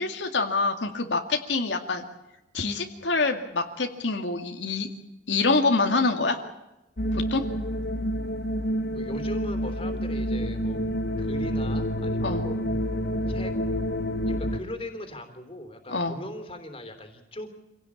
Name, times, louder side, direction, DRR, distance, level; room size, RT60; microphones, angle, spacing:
voice 1, 0.0-2.0 2.5-4.9 5.3-6.4 7.1-7.4 12.2-12.4 15.9-16.2, left 3 dB, 90° left, 4 dB, 2.2 m, -26 dB
sound 1, 7.0-14.6, equal, 60° left, 1.3 m, -28 dB
voice 2, 8.9-10.8 11.2-12.6 13.3-13.6 14.3-17.5, left 1 dB, 30° left, 7 dB, 3.4 m, -39 dB
26.5 x 17.5 x 8.6 m, 0.99 s
head